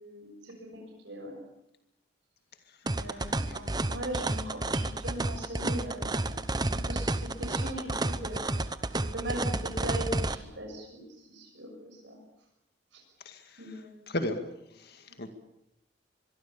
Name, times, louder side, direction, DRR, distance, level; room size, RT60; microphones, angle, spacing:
voice 1, 0.0-1.4 2.8-8.5 9.0-11.0 11.3-12.2 13.6-14.2 15.1-15.3, right 1 dB, 75° right, 1 dB, 6.7 m, -40 dB
sound 1, 2.9-10.4, right 2 dB, 20° right, 1.0 m, -31 dB
voice 2, 3.1-3.6 13.3-14.4 14.8-15.3, left 1 dB, 55° left, 7 dB, 2.2 m, -37 dB
25.0 x 23.0 x 7.1 m, 0.83 s
head